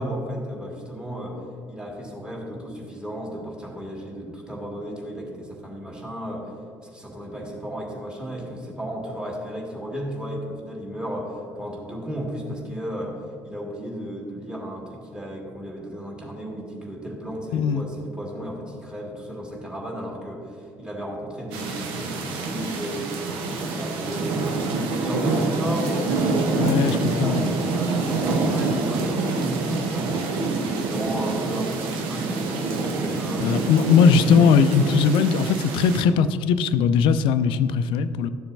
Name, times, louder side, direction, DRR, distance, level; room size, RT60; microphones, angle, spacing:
voice 1, 0.0-6.5 6.8-24.6 24.9-27.5 27.7-30.6 30.9-33.5, equal, 10° right, -2 dB, 2.1 m, -34 dB
voice 2, 17.5-17.9 26.6-27.5 33.4-38.3, left 6 dB, 60° left, 13 dB, 0.4 m, -19 dB
sound 1, 21.5-36.0, right 3 dB, 65° right, 1.0 m, -26 dB
13.0 x 7.0 x 2.7 m, 2.4 s
hypercardioid pair, 55°, 10 cm